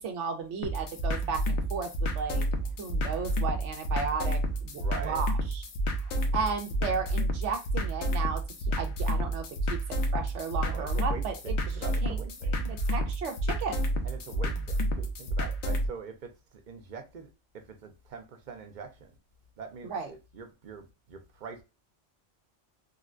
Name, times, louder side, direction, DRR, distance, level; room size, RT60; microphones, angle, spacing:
voice 1, 0.0-2.4 2.8-5.6 6.3-8.4 8.8-9.8 10.1-11.6 12.0-12.2 12.4-13.8 19.8-20.1, right 5 dB, 70° right, 1.1 m, -34 dB
sound 1, 0.6-15.9, right 1 dB, 70° left, 1.0 m, -30 dB
voice 2, 4.7-5.2 10.6-12.5 14.0-19.1 19.6-21.6, right 5 dB, 50° right, 0.6 m, -44 dB
3.8 x 2.2 x 2.4 m
omnidirectional pair, 1.3 m